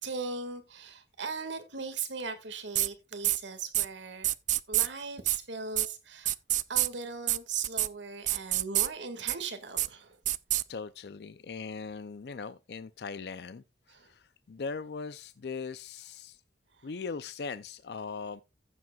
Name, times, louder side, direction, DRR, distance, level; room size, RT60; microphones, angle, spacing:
voice 1, 0.0-4.3 4.7-6.3 6.7-10.2 13.9-14.1, right 4 dB, 90° right, 1.9 m, -38 dB
sound 1, 2.8-2.9 3.2-3.4 3.7-3.9 4.2-4.9 5.3-5.4 5.8-5.9 6.3-6.9 7.3-7.4 7.6-7.9 8.3-8.9 9.3-9.4 9.8-9.9 10.3-10.6, right 15 dB, 45° right, 0.4 m, -26 dB
voice 2, 10.7-16.4 16.8-18.4, left 5 dB, 60° left, 0.5 m, -40 dB
15.0 x 7.7 x 2.3 m
head